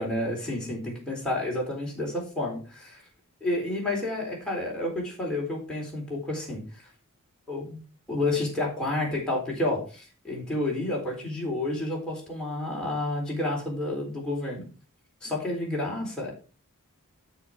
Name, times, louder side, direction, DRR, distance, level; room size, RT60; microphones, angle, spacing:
voice 1, 0.0-3.0 3.4-6.6 7.5-7.8 8.1-14.7 15.2-16.3, left 2 dB, 5° left, -4 dB, 4.1 m, -30 dB
10.0 x 6.9 x 3.7 m, 0.35 s
head